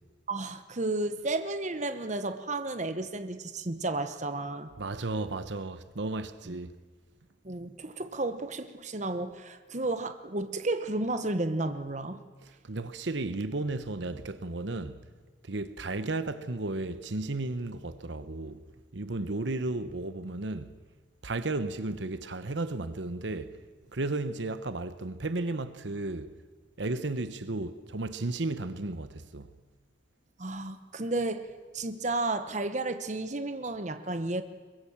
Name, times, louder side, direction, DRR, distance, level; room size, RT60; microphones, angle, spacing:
voice 1, 0.3-4.7 6.5-6.6 7.4-12.2 30.4-31.5 31.7-34.4, right 2 dB, 40° right, 1.0 m, -32 dB
voice 2, 4.8-6.8 12.4-15.1 15.4-18.6 18.9-20.7 21.2-23.5 23.9-26.3 26.8-29.5, right 2 dB, 70° right, 1.0 m, -34 dB
23.0 x 21.5 x 7.3 m
head